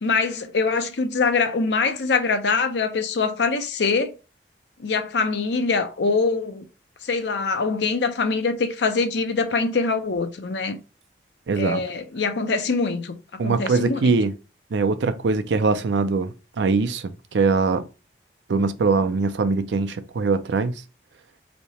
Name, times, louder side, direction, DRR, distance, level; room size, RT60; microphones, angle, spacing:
voice 1, 0.0-4.2 4.8-6.6 7.0-10.8 11.6-14.1, left 4 dB, 80° left, 0.6 m, -24 dB
voice 2, 11.5-11.8 13.4-14.3 14.7-17.8 18.5-20.8, right 4 dB, 85° right, 0.5 m, -22 dB
3.3 x 2.8 x 4.1 m
head